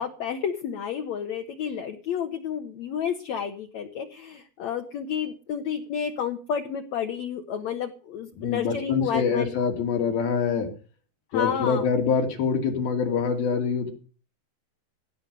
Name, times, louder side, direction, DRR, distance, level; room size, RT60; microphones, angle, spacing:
voice 1, 0.0-9.5 11.3-11.9, left 7 dB, 65° left, 5 dB, 2.0 m, -30 dB
voice 2, 8.4-10.7 11.3-13.9, left 6 dB, 85° left, 3 dB, 4.4 m, -25 dB
17.0 x 9.1 x 6.7 m, 0.39 s
omnidirectional pair, 4.2 m